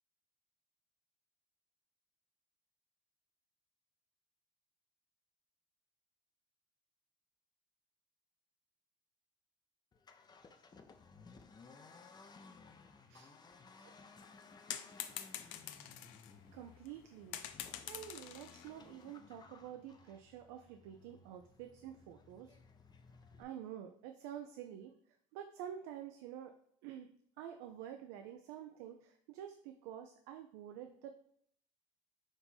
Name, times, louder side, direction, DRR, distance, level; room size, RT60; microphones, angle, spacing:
Accelerating revving vroom, 9.9-23.4, left 4 dB, 25° left, 0.5 m, -59 dB
sound 1, 14.2-16.3 16.9-17.0 17.3-19.1, left 11 dB, 80° left, 0.4 m, -46 dB
voice 1, 16.5-17.4 17.9-22.6 23.4-24.9 25.3-26.5 26.8-27.1 27.4-31.1, right 10 dB, 80° right, 6 dB, 0.4 m, -49 dB
4.6 x 2.7 x 4.1 m, 0.65 s
supercardioid pair, 75°, 17 cm